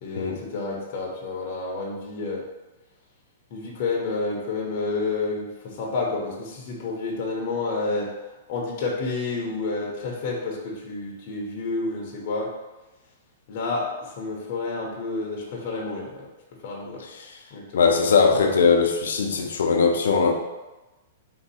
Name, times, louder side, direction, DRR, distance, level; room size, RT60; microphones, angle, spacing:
voice 1, 0.0-2.4 3.5-8.1 8.5-12.5 13.5-16.3 16.6-17.0 17.5-17.9, left 3 dB, 40° left, -2 dB, 0.8 m, -29 dB
voice 2, 17.7-20.3, left 5 dB, 90° left, 4 dB, 0.6 m, -20 dB
3.9 x 2.7 x 4.1 m, 1.1 s
hypercardioid pair, 170°, 0 cm